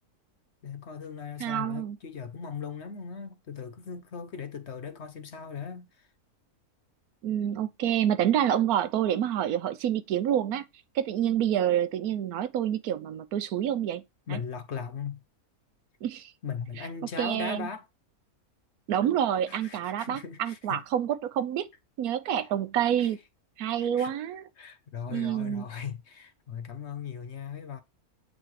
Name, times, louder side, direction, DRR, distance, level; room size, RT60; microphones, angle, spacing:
voice 1, 0.6-5.9 14.3-15.2 16.4-17.9 19.5-20.8 23.0-23.1 23.7-24.1 24.6-27.8, left 6 dB, 55° left, 1.0 m, -38 dB
voice 2, 1.4-2.0 7.2-10.6 10.9-14.0 14.3-14.4 16.0-16.3 17.2-17.7 18.9-21.7 22.0-23.2 23.6-24.4 25.1-25.6, right 10 dB, 85° right, 1.2 m, -27 dB
8.0 x 4.2 x 3.2 m
omnidirectional pair, 1.6 m